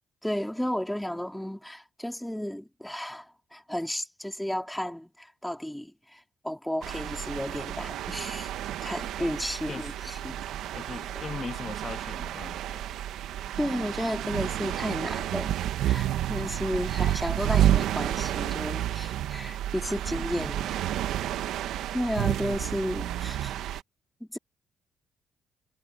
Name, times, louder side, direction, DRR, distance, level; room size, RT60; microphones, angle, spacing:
voice 1, 0.2-8.5 8.8-10.5 11.1-11.3 13.6-15.5 15.8-20.7 21.9-23.5 24.2-24.4, equal, 5° left, 3.9 m, -33 dB
sound 1, 6.8-23.8, right 12 dB, 85° right, 1.4 m, -30 dB
voice 2, 9.7-10.3 10.7-12.9 20.1-20.5 20.8-20.9 21.5-21.6, left 5 dB, 35° left, 2.0 m, -40 dB
cardioid pair, 90°, 0 cm